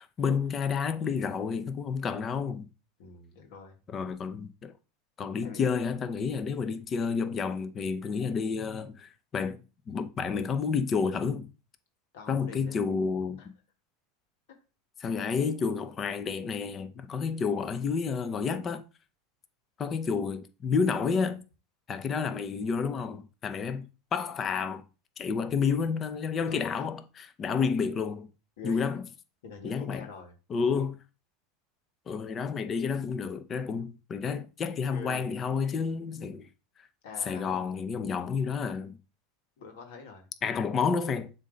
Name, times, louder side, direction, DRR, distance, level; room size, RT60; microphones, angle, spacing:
voice 1, 0.0-2.7 3.9-4.7 5.2-9.6 9.9-11.5 12.3-13.4 15.0-18.8 19.8-21.4 21.9-24.8 25.2-28.3 28.6-29.0 29.6-30.1 30.5-31.0 32.1-36.5 37.2-39.0 40.4-41.3, left 5 dB, 30° left, 0.7 m, -30 dB
voice 2, 3.0-3.8 5.4-5.7 12.1-12.8 13.4-13.5 17.2-17.4 26.4-26.8 28.6-29.0 29.4-30.3 34.9-35.3 37.0-37.6 39.6-40.2, left 5 dB, 75° left, 1.5 m, -45 dB
7.3 x 2.8 x 5.1 m
hypercardioid pair, 105°, 0 cm